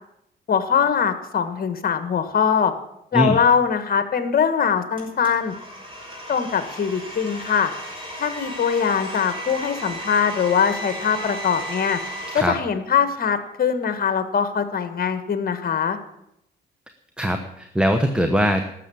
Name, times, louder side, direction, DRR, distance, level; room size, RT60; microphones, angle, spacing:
voice 1, 0.5-2.7 3.1-5.5 6.3-7.7 8.2-12.0 12.3-16.0, left 7 dB, 50° left, 10 dB, 1.5 m, -22 dB
Domestic sounds home sounds, 5.0-12.4, equal, 25° right, 6.2 m, -35 dB
voice 2, 17.2-18.6, equal, 5° right, 7 dB, 1.1 m, -21 dB
12.5 x 7.3 x 8.6 m, 0.80 s
cardioid pair, 90°, 20 cm